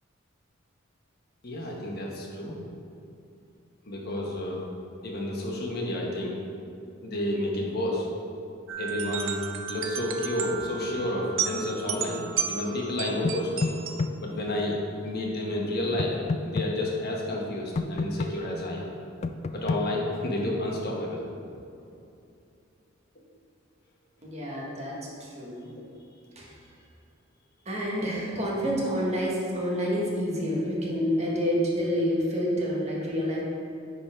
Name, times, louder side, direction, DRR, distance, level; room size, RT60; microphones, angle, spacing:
voice 1, 1.4-2.7 3.8-4.6 5.0-6.4 7.0-8.1 8.8-9.4 9.7-13.7 14.2-14.8 15.0-16.1 16.5-18.9 19.5-21.2 28.0-28.1, left 1 dB, 55° left, -2 dB, 1.3 m, -30 dB
sound 1, 8.7-14.1, right 8 dB, 80° right, 0.6 m, -33 dB
sound 2, 13.2-14.1 16.0-16.7 17.8-18.3 19.2-19.8, left 3 dB, 35° left, 0.3 m, -28 dB
voice 2, 24.2-25.7 26.3-26.5 27.6-33.4, equal, 35° right, -4 dB, 1.5 m, -28 dB
9.9 x 4.2 x 4.4 m, 2.6 s
head